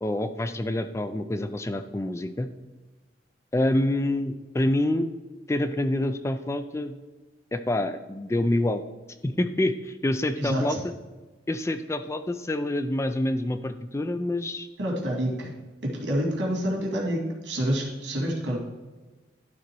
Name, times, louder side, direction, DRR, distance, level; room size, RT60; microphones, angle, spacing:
voice 1, 0.0-2.5 3.5-5.1 5.5-7.0 7.5-8.8 9.2-10.8 11.5-14.7, left 1 dB, 15° left, 10 dB, 0.3 m, -27 dB
voice 2, 10.4-10.8 14.8-15.5 15.8-18.6, equal, 85° right, -1 dB, 2.3 m, -27 dB
11.5 x 3.9 x 4.6 m, 1.2 s
head